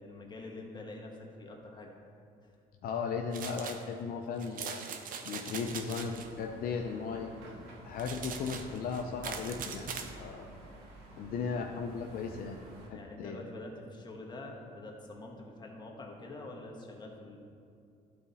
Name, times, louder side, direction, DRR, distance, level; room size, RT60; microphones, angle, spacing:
voice 1, 0.0-1.9 2.4-2.5 11.2-11.7 12.9-17.4, left 2 dB, 25° left, 0 dB, 1.3 m, -46 dB
voice 2, 2.8-4.8 5.3-7.4 7.8-9.9 10.2-10.5 11.2-12.6 13.2-13.4, left 5 dB, 60° left, 2 dB, 0.6 m, -36 dB
sound 1, 3.3-3.8 4.4-6.3 8.0-10.1, right 6 dB, 55° right, 0.7 m, -41 dB
sound 2, 5.5-12.9, right 1 dB, 80° right, 1.8 m, -52 dB
12.0 x 4.2 x 4.1 m, 2.5 s
cardioid pair, 110°, 17 cm